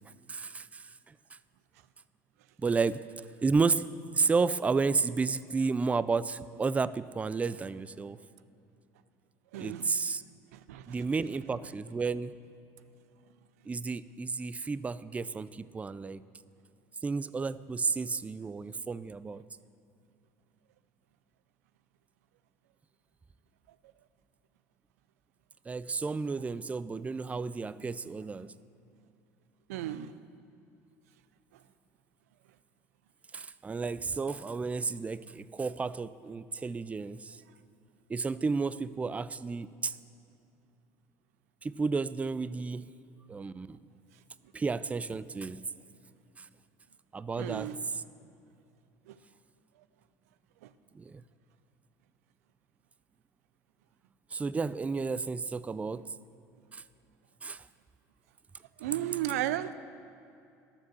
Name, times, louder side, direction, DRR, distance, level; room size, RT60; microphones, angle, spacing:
voice 1, 0.3-0.6 2.6-3.0 3.4-3.9 4.2-8.2 9.6-10.2 10.9-12.3 13.7-16.2 17.0-19.4 25.7-28.5 33.3-37.2 38.1-39.9 41.6-42.9 43.3-43.7 44.5-45.6 47.1-47.7 51.0-51.1 54.3-56.0 56.7-56.8 57.4-57.6, right 4 dB, 15° right, 16 dB, 0.4 m, -31 dB
voice 2, 9.5-9.9 10.5-11.1 29.7-30.1 47.4-47.8 49.1-49.2 50.6-50.7 58.8-59.7, right 12 dB, 85° right, 15 dB, 0.5 m, -34 dB
12.5 x 7.3 x 6.3 m, 2.7 s
hypercardioid pair, 80°, 8 cm